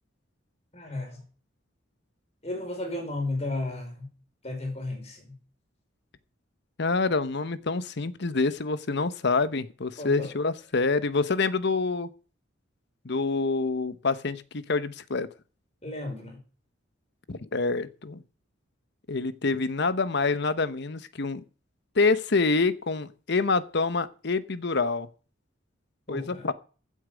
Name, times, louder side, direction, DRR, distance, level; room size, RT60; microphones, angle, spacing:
voice 1, 0.7-1.2 2.4-4.1 4.4-5.4 10.0-10.3 15.8-16.4 26.1-26.5, left 2 dB, 35° left, 5.2 m, -34 dB
voice 2, 6.8-12.1 13.0-15.3 17.3-18.2 19.1-21.4 21.9-25.1 26.1-26.5, left 3 dB, 60° left, 0.9 m, -26 dB
15.5 x 8.6 x 5.0 m
head